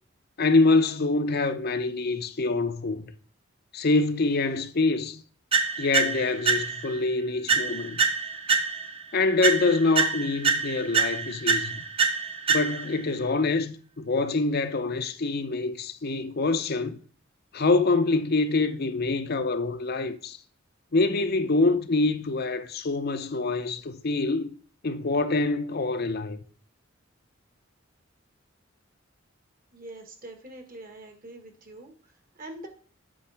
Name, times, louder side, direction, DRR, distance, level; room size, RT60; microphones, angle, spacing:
voice 1, 0.4-3.1 3.7-5.2 5.8-8.0 9.1-11.7 12.5-17.0 17.5-20.4 20.9-24.6 24.8-26.4, left 3 dB, 50° left, 0.7 m, -25 dB
sound 1, 5.5-7.0 7.5-9.0 9.4-13.0, right 5 dB, 30° right, 0.8 m, -26 dB
voice 2, 29.7-32.7, right 1 dB, 45° right, 1.6 m, -44 dB
8.5 x 5.3 x 3.4 m
head